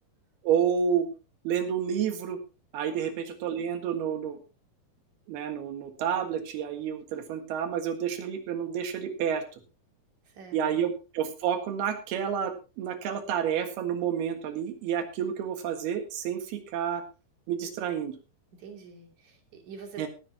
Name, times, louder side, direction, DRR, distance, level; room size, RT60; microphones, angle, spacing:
voice 1, 0.4-1.1 1.5-2.4 2.7-4.4 5.3-9.4 10.5-17.0 17.5-18.2 20.0-20.1, right 8 dB, 80° right, 7 dB, 3.6 m, -29 dB
voice 2, 10.3-10.8 18.6-20.1, right 5 dB, 50° right, 3 dB, 4.0 m, -46 dB
18.0 x 10.5 x 2.9 m, 0.30 s
omnidirectional pair, 4.5 m